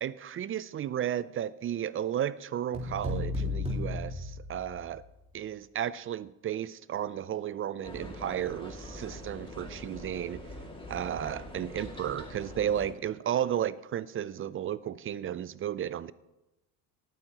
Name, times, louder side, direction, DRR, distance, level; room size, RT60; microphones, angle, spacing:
voice 1, 0.0-5.0 5.3-10.5 10.9-16.1, right 10 dB, 30° right, 0.4 m, -33 dB
sound 1, 2.7-5.0, left 2 dB, 15° right, 4.0 m, -34 dB
sound 2, 7.8-12.9, left 1 dB, 10° left, 2.3 m, -44 dB
19.0 x 9.0 x 3.0 m
hypercardioid pair, 65°, 45 cm